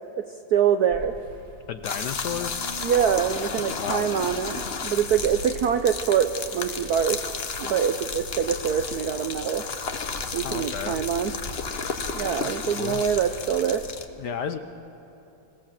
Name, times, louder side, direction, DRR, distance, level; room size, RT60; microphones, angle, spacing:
voice 1, 0.2-1.2 2.8-7.2 7.6-9.7 10.3-11.3 12.1-13.8, right 8 dB, 75° right, 8 dB, 0.9 m, -24 dB
sound 1, 0.9-13.7, left 1 dB, 45° right, 3.9 m, -44 dB
voice 2, 1.7-2.6 3.8-4.1 10.4-11.0 12.3-13.1 14.2-14.6, left 7 dB, 65° left, 9 dB, 1.1 m, -33 dB
sound 2, 1.8-14.1, left 5 dB, 45° left, 0.8 m, -33 dB
sound 3, 2.2-5.4, left 3 dB, 25° left, 6.0 m, -46 dB
25.5 x 17.5 x 7.5 m, 3.0 s
omnidirectional pair, 2.4 m